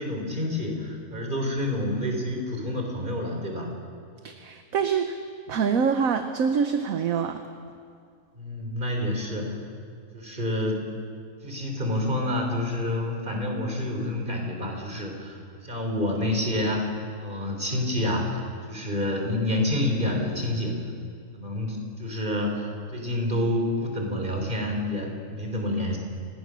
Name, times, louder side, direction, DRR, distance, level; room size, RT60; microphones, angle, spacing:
voice 1, 0.0-3.7 8.4-9.6 10.1-10.8 11.4-15.4 15.6-16.9 17.2-18.4 18.7-20.8 21.3-26.0, left 1 dB, 30° right, 2 dB, 3.8 m, -28 dB
voice 2, 4.2-5.2 5.5-7.4, right 6 dB, 65° right, 7 dB, 1.3 m, -25 dB
29.0 x 18.0 x 6.3 m, 2.3 s
omnidirectional pair, 1.6 m